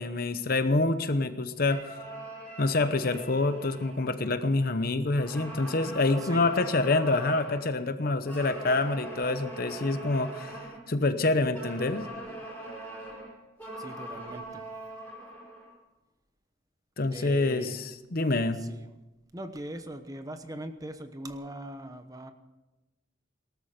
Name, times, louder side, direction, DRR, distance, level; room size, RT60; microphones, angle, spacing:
voice 1, 0.0-1.8 2.6-10.6 10.9-12.1 17.0-18.6, left 2 dB, 50° left, 11 dB, 0.9 m, -27 dB
sound 1, 1.6-4.7 5.1-7.7 8.2-10.9 11.5-15.8, right 1 dB, 10° left, 4.5 m, -42 dB
voice 2, 13.8-14.7 17.1-17.8 18.6-18.9 19.3-22.3, right 1 dB, 20° right, 8 dB, 1.0 m, -41 dB
18.5 x 13.0 x 5.2 m, 1.0 s
head